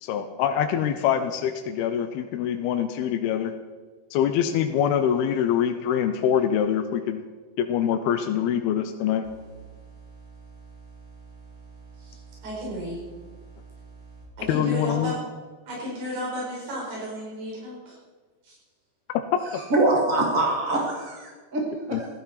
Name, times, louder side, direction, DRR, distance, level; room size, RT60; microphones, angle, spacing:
voice 1, 0.0-3.5 4.1-7.2 7.6-9.3 14.5-15.1 19.1-19.4 21.9-22.0, left 9 dB, 85° left, 6 dB, 2.6 m, -24 dB
sound 1, 9.2-14.2, right 4 dB, 30° right, 4.8 m, -47 dB
voice 2, 12.0-13.0 14.4-15.2 15.7-18.0 18.4-18.6, equal, 85° right, -5 dB, 6.8 m, -33 dB
voice 3, 19.7-22.1, right 2 dB, 50° right, -1 dB, 1.0 m, -24 dB
16.0 x 13.0 x 4.4 m, 1.4 s
omnidirectional pair, 4.6 m